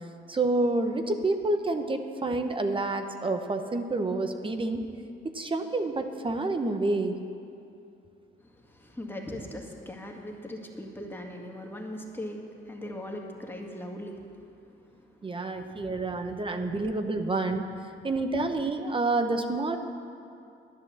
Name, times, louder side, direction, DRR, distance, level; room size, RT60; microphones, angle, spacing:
voice 1, 0.3-4.9 5.3-7.2 15.2-17.7 18.0-19.8, right 2 dB, 25° right, 6 dB, 0.9 m, -28 dB
voice 2, 8.4-14.6 15.0-15.6, left 1 dB, 10° left, 0 dB, 2.0 m, -40 dB
11.0 x 10.5 x 7.1 m, 2.6 s
cardioid pair, 90°, 20 cm